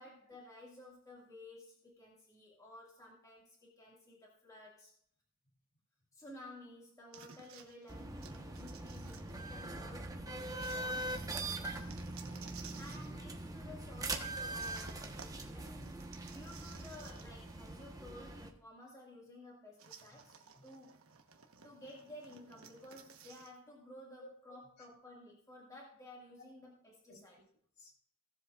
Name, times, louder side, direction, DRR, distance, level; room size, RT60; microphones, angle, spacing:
voice 1, 0.0-4.9 6.1-11.7 12.8-21.0 21.3-27.4, left 1 dB, 15° left, -3 dB, 2.0 m, -54 dB
sound 1, 7.1-9.8 10.6-13.1 14.6-17.5 17.8-17.9 19.8-23.6, right 7 dB, 80° right, 1.1 m, -56 dB
sound 2, 7.9-18.5, right 2 dB, 15° right, 1.1 m, -42 dB
voice 2, 15.7-15.9 20.6-20.7 24.2-24.3 26.4-26.5 27.1-27.2 27.8-27.9, equal, 55° left, -1 dB, 3.6 m, -55 dB
17.0 x 7.6 x 2.4 m, 0.63 s
head